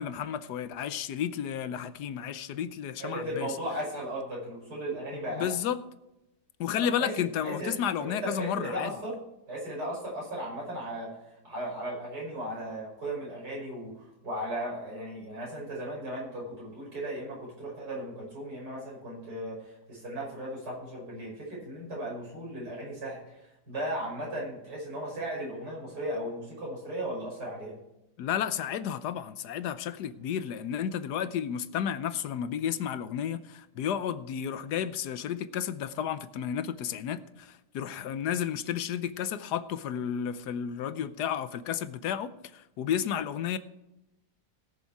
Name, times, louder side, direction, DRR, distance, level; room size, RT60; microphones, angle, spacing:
voice 1, 0.0-3.5 5.1-5.8 6.6-8.9 28.2-43.6, left 9 dB, 80° left, 1.3 m, -32 dB
voice 2, 3.0-5.5 7.0-7.1 7.4-7.7 8.0-9.2 9.5-11.1 11.4-27.8, right 1 dB, 85° right, 6.0 m, -36 dB
18.5 x 6.8 x 4.7 m
omnidirectional pair, 1.7 m